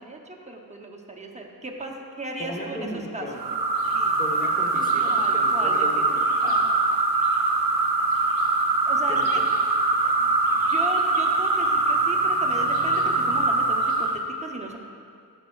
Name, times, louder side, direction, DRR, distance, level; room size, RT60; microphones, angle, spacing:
voice 1, 0.0-3.4 3.9-4.2 5.1-6.1 8.8-9.4 10.0-14.8, right 1 dB, 20° right, 1 dB, 0.7 m, -36 dB
voice 2, 2.4-3.5 4.2-6.6 9.1-9.5, equal, 25° left, -3 dB, 1.0 m, -36 dB
sound 1, 3.4-14.2, right 3 dB, 70° right, 0.7 m, -23 dB
11.5 x 5.2 x 2.3 m, 2.3 s
wide cardioid pair, 55°, 37 cm